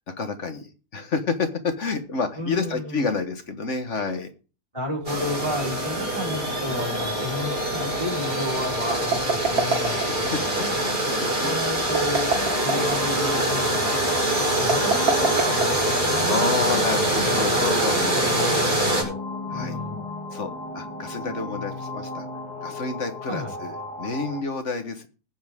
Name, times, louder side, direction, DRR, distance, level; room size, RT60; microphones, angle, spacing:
voice 1, 0.1-4.3 9.9-11.6 16.2-18.4 19.5-19.8 20.3-22.3 22.6-25.1, left 4 dB, 50° left, 7 dB, 1.6 m, -29 dB
voice 2, 2.4-3.1 4.7-10.7 11.4-14.2 14.5-16.8 17.2-17.7 18.1-19.2 19.5-20.1 23.3-23.5, left 1 dB, 20° right, -3 dB, 4.7 m, -32 dB
sound 1, 5.1-19.0, right 1 dB, 35° right, 5.2 m, -24 dB
sound 2, 8.8-10.3 11.8-13.0 14.6-16.1, right 4 dB, 80° right, 2.4 m, -25 dB
sound 3, 12.3-24.4, left 2 dB, 85° left, 3.1 m, -35 dB
20.5 x 7.4 x 3.6 m, 0.35 s
omnidirectional pair, 1.6 m